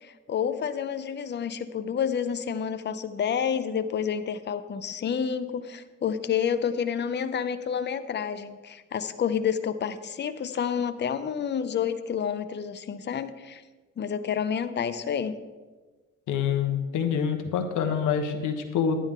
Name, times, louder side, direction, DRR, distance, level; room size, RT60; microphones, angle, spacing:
voice 1, 0.0-13.6 14.0-15.4, left 7 dB, 35° left, 12 dB, 0.6 m, -29 dB
voice 2, 16.3-19.0, left 7 dB, 80° left, 7 dB, 1.2 m, -26 dB
10.5 x 10.0 x 3.7 m, 1.3 s
cardioid pair, 90°, 30 cm